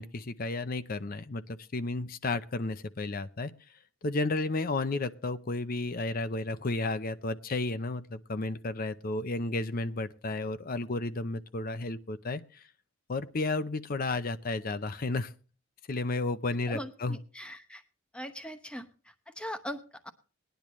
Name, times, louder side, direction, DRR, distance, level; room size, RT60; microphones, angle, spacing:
voice 1, 0.0-3.5 4.0-12.6 13.1-15.3 15.9-17.2, left 2 dB, 45° left, 13 dB, 0.6 m, -32 dB
voice 2, 16.7-17.8 18.1-20.1, equal, 5° left, 8 dB, 1.0 m, -41 dB
19.5 x 10.5 x 3.1 m, 0.37 s
head